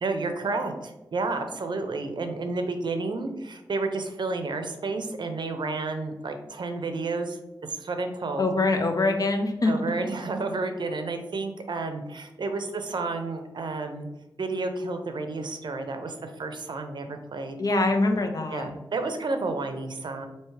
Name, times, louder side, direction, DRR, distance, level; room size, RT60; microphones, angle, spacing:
voice 1, 0.0-7.4 7.7-8.5 9.6-14.1 14.4-17.6 18.5-20.3, right 3 dB, 70° right, 6 dB, 0.5 m, -31 dB
voice 2, 8.4-9.7 17.6-18.7, left 2 dB, 50° left, 4 dB, 0.6 m, -24 dB
4.5 x 2.8 x 3.1 m, 0.98 s
wide cardioid pair, 85°, 8 cm